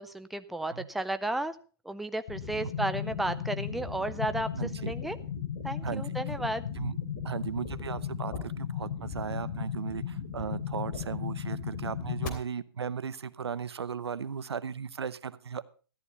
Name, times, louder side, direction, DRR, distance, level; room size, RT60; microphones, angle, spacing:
voice 1, 0.0-1.6 1.8-4.5 4.8-5.2 5.6-6.6, right 1 dB, ahead, 10 dB, 0.5 m, -33 dB
sound 1, 2.3-12.3, left 8 dB, 45° left, 3.0 m, -36 dB
voice 2, 4.6-4.9 5.8-6.0 6.8-6.9 7.2-15.6, right 6 dB, 85° right, 16 dB, 0.9 m, -36 dB
13.5 x 11.5 x 4.1 m, 0.38 s
hypercardioid pair, 135°, 13 cm